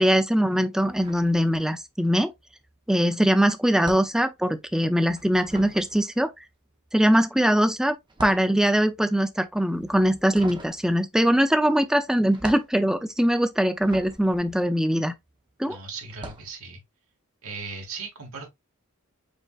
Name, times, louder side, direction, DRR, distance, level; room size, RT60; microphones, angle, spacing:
voice 1, 0.0-2.3 2.9-6.3 6.9-7.9 8.2-15.1 15.6-15.8, equal, 5° right, 0.4 m, -22 dB
sound 1, 0.8-2.0 2.3-15.5 16.0-16.6, right 2 dB, 20° right, 0.8 m, -44 dB
voice 2, 15.7-16.8 17.4-18.5, right 4 dB, 75° right, 1.8 m, -37 dB
5.1 x 3.7 x 2.4 m
head